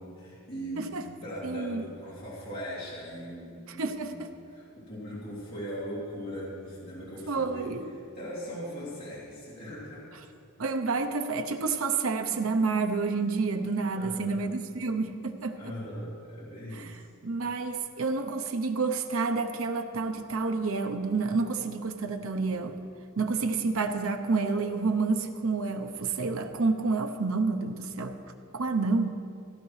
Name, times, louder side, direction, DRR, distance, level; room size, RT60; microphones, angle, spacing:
voice 1, 0.0-7.7 8.1-10.2 13.9-14.4 15.5-17.0, equal, 45° left, -9 dB, 2.7 m, -40 dB
voice 2, 1.4-1.8 3.8-4.1 7.3-7.9 10.6-15.6 16.7-22.8 23.2-28.2 28.5-29.2, right 4 dB, 65° right, 6 dB, 0.7 m, -29 dB
16.0 x 10.5 x 3.2 m, 2.4 s
head